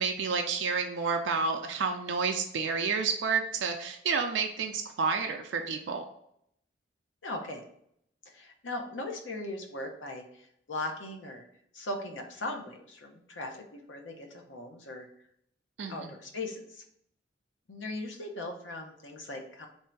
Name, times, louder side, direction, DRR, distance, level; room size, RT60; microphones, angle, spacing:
voice 1, 0.0-6.0 15.8-16.1, right 5 dB, 75° right, 4 dB, 0.4 m, -30 dB
voice 2, 7.2-7.6 8.3-11.4 11.7-15.1 15.9-16.8 17.7-19.7, left 2 dB, 85° left, 3 dB, 0.7 m, -39 dB
3.3 x 2.7 x 4.5 m, 0.71 s
head